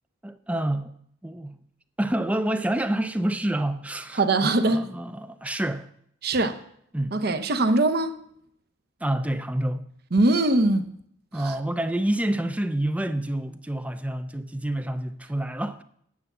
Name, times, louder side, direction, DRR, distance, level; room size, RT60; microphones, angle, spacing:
voice 1, 0.2-0.9 1.2-1.6 2.0-5.9 6.9-7.2 9.0-9.9 11.3-15.8, right 1 dB, 5° right, 0.4 m, -28 dB
voice 2, 4.2-4.8 6.2-6.6 7.1-8.2 10.1-10.9 11.3-11.6, right 2 dB, 50° right, 0.8 m, -22 dB
9.6 x 6.8 x 7.3 m
head